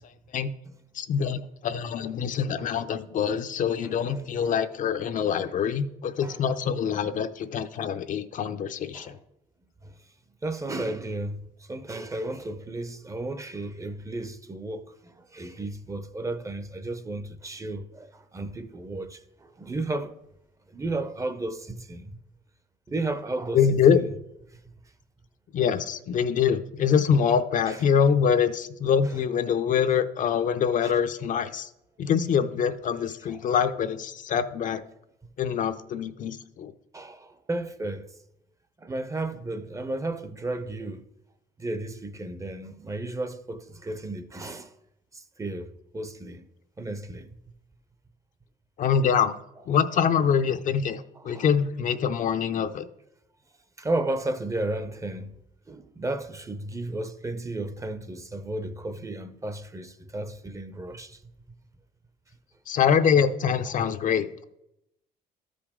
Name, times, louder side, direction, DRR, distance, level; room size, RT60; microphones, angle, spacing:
voice 1, 0.9-9.2 23.5-24.0 25.5-31.7 32.0-34.8 35.4-36.7 48.8-49.4 49.7-52.9 62.7-64.4, left 7 dB, 50° left, 0.6 m, -24 dB
voice 2, 3.8-4.5 6.2-6.4 6.9-7.0 8.9-9.2 9.8-10.0 10.4-20.2 20.7-22.2 22.9-23.7 23.9-24.0 24.5-24.6 27.7-27.8 29.0-29.2 30.8-30.9 33.3-33.5 36.9-38.1 38.8-41.1 41.6-44.7 45.1-46.5 46.8-47.3 51.1-51.5 53.8-55.4 55.7-61.2 63.7-63.8, right 2 dB, 20° right, 0.6 m, -34 dB
13.0 x 5.1 x 3.6 m
cardioid pair, 110°, 17 cm